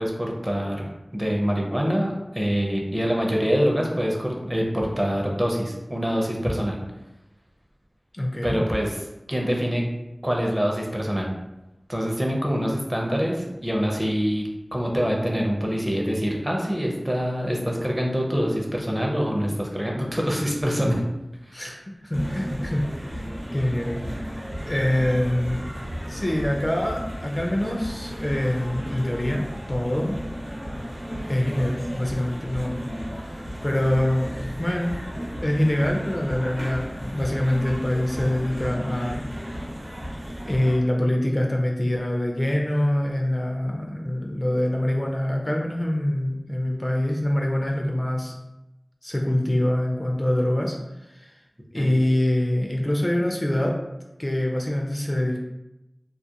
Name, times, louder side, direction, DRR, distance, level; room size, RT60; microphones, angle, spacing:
voice 1, 0.0-6.8 8.4-9.0 9.3-9.8 10.2-11.3 11.9-21.0 51.7-52.0, equal, 15° right, -1 dB, 0.5 m, -25 dB
voice 2, 8.1-8.6 21.5-23.2 23.5-24.2 24.7-25.6 26.1-30.2 31.3-32.8 33.2-34.9 35.4-39.2 40.5-48.3 49.0-50.8 51.1-51.3 51.7-53.8 54.2-55.4, left 1 dB, 35° left, 0 dB, 0.4 m, -25 dB
sound 1, 22.1-40.8, equal, 65° right, 0.9 m, -34 dB
2.3 x 2.1 x 2.7 m, 0.95 s
wide cardioid pair, 50°, 0 cm